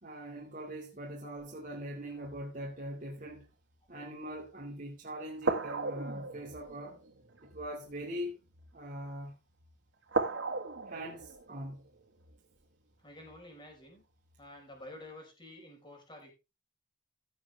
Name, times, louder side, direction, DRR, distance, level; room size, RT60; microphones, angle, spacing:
voice 1, 0.0-3.5 3.9-7.0 7.4-8.4 8.7-9.3 10.9-11.8, equal, 45° right, 2.4 m, -42 dB
sound 1, 1.4-2.7 3.2-3.5 4.3-4.5 5.4-9.0 9.5-9.7 10.1-13.6 14.2-14.4, right 3 dB, 90° right, 1.9 m, -38 dB
voice 2, 13.0-14.0 14.4-16.3, left 1 dB, 25° left, 4.7 m, -50 dB
16.0 x 7.3 x 3.5 m
head